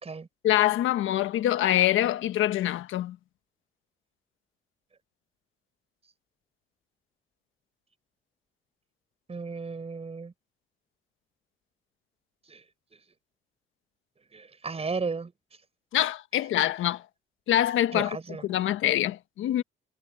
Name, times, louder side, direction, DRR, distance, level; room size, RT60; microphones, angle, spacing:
voice 1, 0.4-3.2 15.9-17.0 17.5-18.2 18.4-19.6, left 13 dB, 80° left, 1.3 m, -25 dB
voice 2, 9.3-10.3 12.5-12.6 14.3-15.3 17.9-18.4, right 4 dB, 30° right, 5.0 m, -34 dB
cardioid pair, 90°, 20 cm